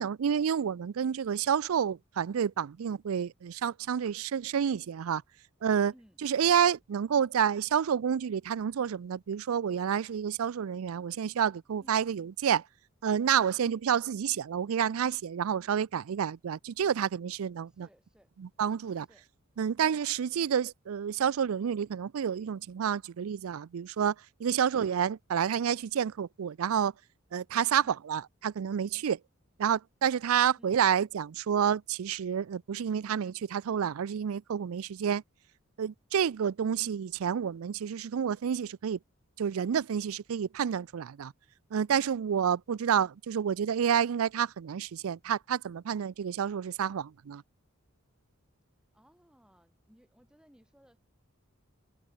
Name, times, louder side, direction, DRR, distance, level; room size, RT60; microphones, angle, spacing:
voice 1, 0.0-5.2 5.6-5.9 6.2-12.6 13.0-17.9 18.4-19.1 19.6-24.1 24.4-26.9 27.3-29.2 29.6-35.2 35.8-39.0 39.4-41.3 41.7-47.4, right 8 dB, 85° right, 0.4 m, -29 dB
voice 2, 5.9-6.2 11.8-12.0 17.7-18.3 19.0-19.3 20.3-20.5 27.8-28.0 30.6-30.8 48.9-51.0, equal, 5° right, 6.4 m, -62 dB
head